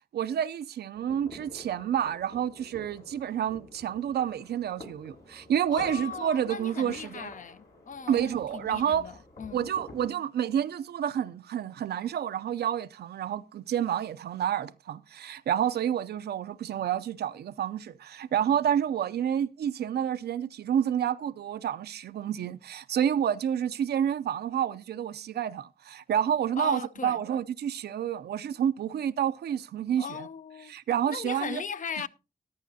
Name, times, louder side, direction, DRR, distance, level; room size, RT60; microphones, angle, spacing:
voice 1, 0.1-7.3 8.1-9.1 9.5-30.3 30.7-31.6, right 9 dB, 90° right, 0.5 m, -29 dB
sound 1, 0.9-10.1, left 1 dB, 75° left, 7.2 m, -49 dB
voice 2, 5.7-9.7 26.6-27.2 30.0-30.7 31.1-32.1, left 6 dB, 55° left, 0.6 m, -38 dB
14.0 x 10.5 x 2.7 m
cardioid pair, 80°, 16 cm